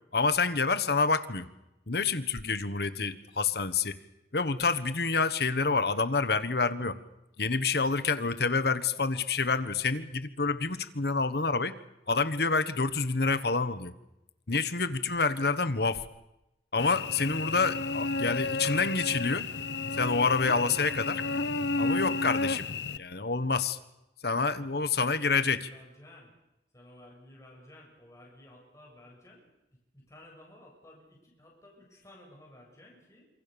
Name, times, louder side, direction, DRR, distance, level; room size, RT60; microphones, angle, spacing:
voice 1, 0.1-1.4 1.9-4.0 4.3-7.0 7.4-11.7 12.1-13.9 14.5-16.0 16.7-19.5 20.0-21.2 21.8-22.7 22.9-23.8 24.2-25.6, left 4 dB, 60° left, 12 dB, 1.4 m, -28 dB
Cricket / Buzz, 16.8-23.0, left 3 dB, 75° left, 1.0 m, -32 dB
voice 2, 24.5-26.3 26.7-29.4 29.9-33.2, left 1 dB, 20° left, -2 dB, 7.9 m, -53 dB
27.5 x 26.0 x 7.0 m, 0.92 s
head